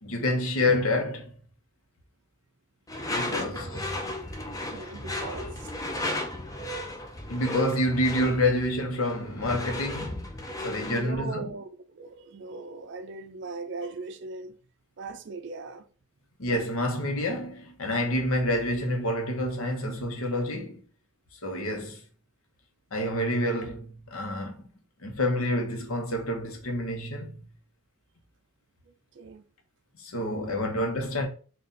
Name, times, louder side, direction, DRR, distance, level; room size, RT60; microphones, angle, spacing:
voice 1, 0.0-1.3 3.0-3.7 7.3-10.3 10.6-11.5 16.4-20.8 21.4-22.0 22.9-24.6 25.0-27.4 30.0-31.3, left 1 dB, 70° left, 0.9 m, -28 dB
Door / Screech, 2.9-11.1, left 1 dB, 15° left, 0.5 m, -34 dB
voice 2, 3.1-4.1 4.6-6.0 10.9-14.6 15.0-15.9 28.9-29.4 30.4-30.6 31.0-31.1, right 3 dB, 50° right, 0.4 m, -40 dB
4.1 x 2.5 x 3.7 m
head